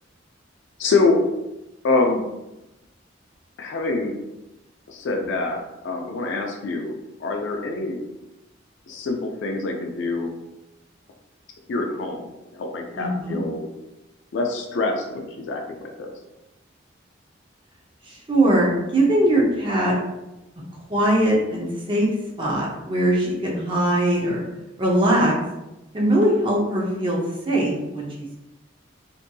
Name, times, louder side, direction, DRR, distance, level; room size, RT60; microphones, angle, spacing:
voice 1, 0.8-1.2 1.8-2.2 3.6-4.2 4.9-6.9 7.2-8.0 8.9-10.3 11.7-13.6 14.3-16.1 23.2-23.5, left 3 dB, 70° left, 1 dB, 0.4 m, -25 dB
voice 2, 13.0-13.4 18.1-19.9 20.9-22.1 22.4-24.4 24.8-25.3 25.9-27.2 27.5-28.3, right 1 dB, 25° right, -3 dB, 0.5 m, -21 dB
2.6 x 2.6 x 2.2 m, 0.96 s
head